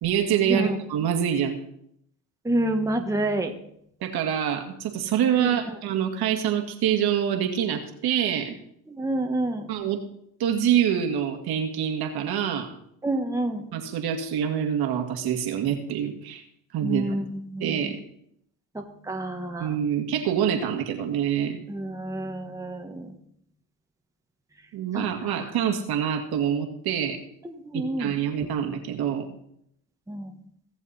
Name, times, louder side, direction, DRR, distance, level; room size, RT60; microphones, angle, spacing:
voice 1, 0.0-1.6 4.0-8.5 9.7-10.0 10.4-12.7 13.7-16.4 16.7-17.1 17.6-18.0 19.6-21.6 24.7-27.2 27.7-29.3, right 9 dB, 65° right, 4 dB, 2.1 m, -26 dB
voice 2, 2.4-3.5 5.4-5.7 8.9-9.7 13.0-13.7 16.8-18.0 18.7-19.8 21.7-23.1 24.9-25.5 27.4-28.1 28.4-28.5 30.1-30.3, right 1 dB, 10° right, 3 dB, 1.5 m, -29 dB
18.0 x 7.2 x 4.2 m, 0.73 s
supercardioid pair, 75°, 41 cm